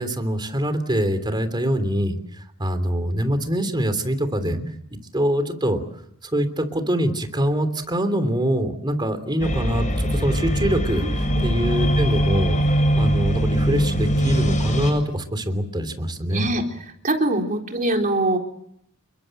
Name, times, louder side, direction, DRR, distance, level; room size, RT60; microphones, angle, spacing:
voice 1, 0.0-2.2 2.6-4.6 5.1-5.8 6.2-12.6 12.9-16.5, equal, 20° right, 9 dB, 3.2 m, -24 dB
sound 1, 9.4-14.9, equal, 35° left, 7.1 m, -21 dB
voice 2, 11.0-11.5 16.3-16.6 17.0-18.4, right 2 dB, 40° right, 2 dB, 4.0 m, -23 dB
29.5 x 23.0 x 7.8 m, 0.71 s
head